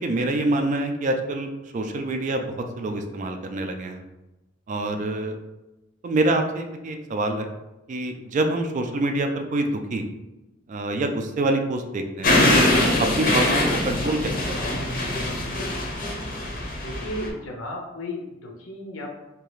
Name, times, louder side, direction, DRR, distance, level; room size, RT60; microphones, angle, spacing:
voice 1, 0.0-4.0 4.7-5.4 6.0-7.5 7.9-10.0 10.7-12.4 12.8-14.9, right 2 dB, 40° right, 5 dB, 0.3 m, -26 dB
sound 1, 12.2-17.3, left 1 dB, 45° left, 0.6 m, -23 dB
voice 2, 16.7-19.1, left 1 dB, 85° left, 0 dB, 0.7 m, -34 dB
2.9 x 2.3 x 3.1 m, 0.99 s
head